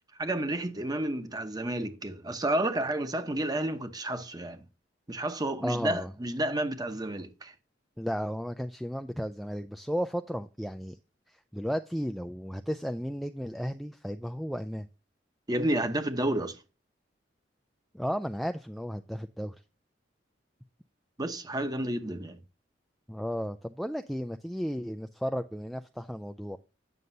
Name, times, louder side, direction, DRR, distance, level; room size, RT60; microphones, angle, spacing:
voice 1, 0.2-4.6 5.1-7.5 15.5-16.6 21.2-22.4, right 1 dB, 20° right, 0.9 m, -31 dB
voice 2, 5.6-6.1 8.0-11.0 11.3-14.9 17.9-19.6 23.1-26.6, equal, ahead, 0.3 m, -34 dB
9.3 x 6.6 x 2.7 m
head